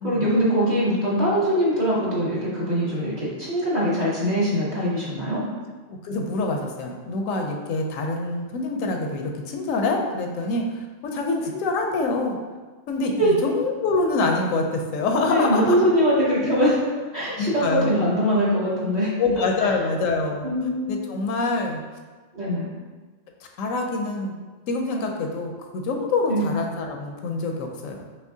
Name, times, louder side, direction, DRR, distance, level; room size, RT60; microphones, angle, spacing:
voice 1, 0.0-5.5 13.2-13.3 15.3-16.8 17.1-19.7 20.4-21.0 22.3-22.7 26.3-26.5, equal, 35° right, -7 dB, 0.9 m, -22 dB
voice 2, 5.9-12.4 12.9-15.8 17.4-18.0 19.2-20.5 20.9-21.8 23.6-24.4 24.7-28.1, left 3 dB, 80° left, 2 dB, 1.0 m, -25 dB
5.5 x 3.0 x 2.7 m, 1.3 s
omnidirectional pair, 1.4 m